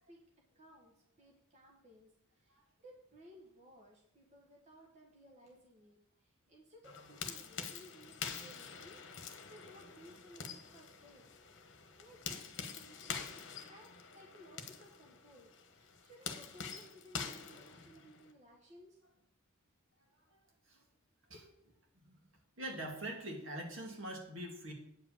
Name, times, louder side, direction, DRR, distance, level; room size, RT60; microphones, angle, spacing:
voice 1, 0.5-11.2 11.7-19.0 21.3-21.7, equal, 35° right, -1 dB, 1.6 m, -59 dB
sound 1, 6.8-18.3, left 6 dB, 60° left, 1.1 m, -46 dB
voice 2, 20.0-20.4 20.7-20.8 21.9-22.2 22.6-24.7, right 1 dB, 65° right, 1 dB, 2.2 m, -44 dB
9.3 x 5.0 x 7.2 m, 0.74 s
head